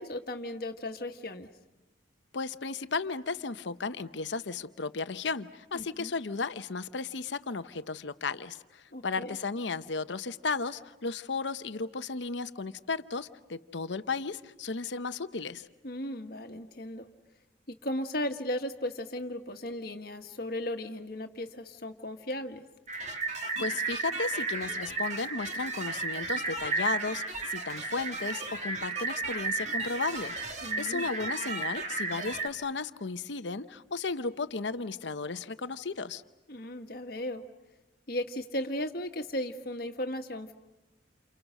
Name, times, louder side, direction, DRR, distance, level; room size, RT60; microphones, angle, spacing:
voice 1, 0.0-1.5 5.7-6.1 8.9-9.4 15.8-17.1 17.7-22.6 30.6-31.1 36.5-37.4 38.1-40.5, left 1 dB, 55° left, 5 dB, 1.6 m, -36 dB
voice 2, 2.3-15.7 23.6-36.2, left 4 dB, 75° left, 12 dB, 0.9 m, -34 dB
sound 1, 22.9-32.5, right 3 dB, 40° right, 2.2 m, -33 dB
29.5 x 29.0 x 6.4 m, 1.0 s
head